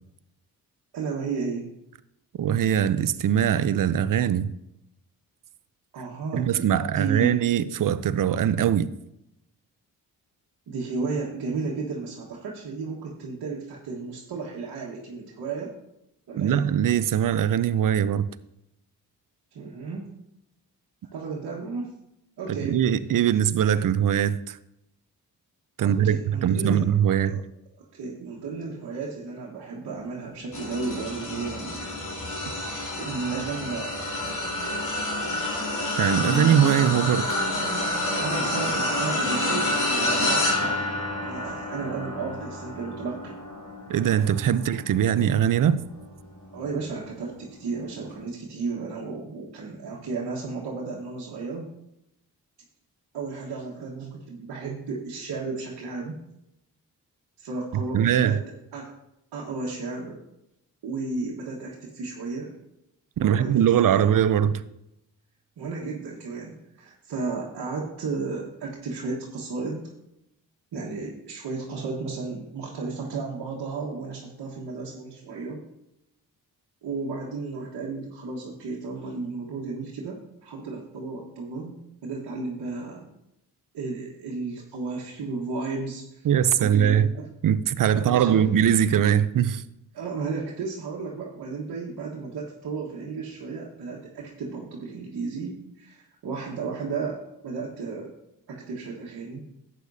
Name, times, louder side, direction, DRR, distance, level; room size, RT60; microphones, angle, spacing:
voice 1, 0.9-1.6 5.9-6.6 6.9-7.3 10.7-15.7 16.3-16.6 19.5-20.0 21.1-21.9 22.4-22.8 25.8-26.9 27.3-27.4 27.8-32.0 32.7-33.9 38.2-40.9 41.2-43.4 46.5-51.6 53.1-56.2 57.4-58.4 58.7-58.9 59.3-60.2 60.8-62.5 63.2-64.1 65.6-69.9 70.7-75.6 76.8-81.7 82.0-83.1 83.7-86.3 86.6-87.3 87.9-88.5 89.9-98.1 98.5-99.5, right 4 dB, 70° right, 1.5 m, -33 dB
voice 2, 2.4-4.5 6.3-8.9 16.4-18.3 22.5-24.6 25.8-27.4 36.0-37.3 43.9-45.8 57.9-58.4 63.2-64.6 86.2-87.1 87.4-89.6, right 9 dB, 50° right, 0.6 m, -22 dB
sound 1, 30.5-46.0 46.6-46.8 48.1-48.2, left 1 dB, 45° left, 3.0 m, -28 dB
11.5 x 8.5 x 2.7 m
supercardioid pair, 45°, 40 cm